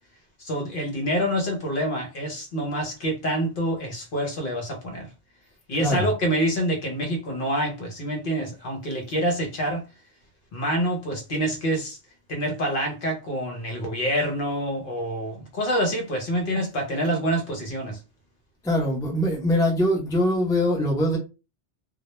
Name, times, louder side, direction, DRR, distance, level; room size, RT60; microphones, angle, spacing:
voice 1, 0.4-5.1 5.7-9.8 10.5-12.0 12.3-18.0, equal, 55° left, 0.8 m, -27 dB
voice 2, 18.6-21.2, left 1 dB, 5° left, 0.5 m, -22 dB
2.2 x 2.1 x 2.9 m
omnidirectional pair, 1.1 m